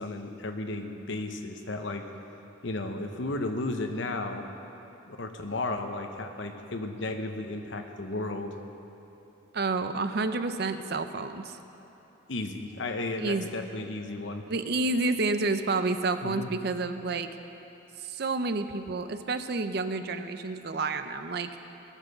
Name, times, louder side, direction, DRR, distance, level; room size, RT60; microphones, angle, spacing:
voice 1, 0.0-2.0 2.6-4.5 5.1-8.5 12.3-14.4 16.2-16.5, left 2 dB, 65° left, 5 dB, 1.0 m, -34 dB
voice 2, 9.5-11.6 13.2-13.5 14.5-17.3 18.0-21.5, right 3 dB, 50° right, 9 dB, 0.6 m, -29 dB
18.0 x 7.4 x 6.6 m, 2.9 s
head